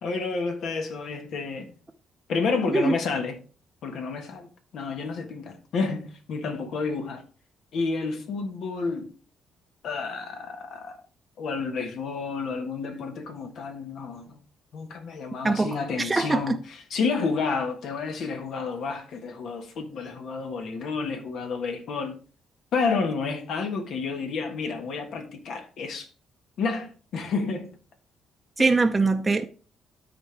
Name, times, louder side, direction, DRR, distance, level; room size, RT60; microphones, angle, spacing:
voice 1, 0.0-1.7 2.3-3.4 3.8-7.2 7.7-9.1 9.8-11.0 11.4-14.4 14.7-16.6 16.9-22.2 22.7-26.1 26.6-27.7 28.6-28.7, left 4 dB, 70° left, 1.4 m, -30 dB
voice 2, 15.4-16.6 28.6-29.4, right 3 dB, 20° right, 0.6 m, -23 dB
13.0 x 4.4 x 3.3 m
cardioid pair, 90°, 0 cm